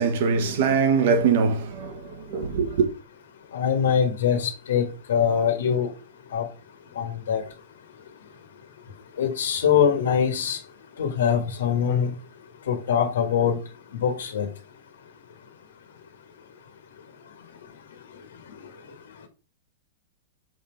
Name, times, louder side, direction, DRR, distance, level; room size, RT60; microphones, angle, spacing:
voice 1, 0.0-2.0 2.3-2.9, right 5 dB, 55° right, 1.3 m, -22 dB
voice 2, 3.5-5.9 6.3-6.4 6.9-7.4 9.2-10.6 11.0-12.1 12.7-13.6 13.9-14.5, left 7 dB, 85° left, 1.6 m, -23 dB
6.1 x 3.7 x 4.6 m
supercardioid pair, 165°, 0 cm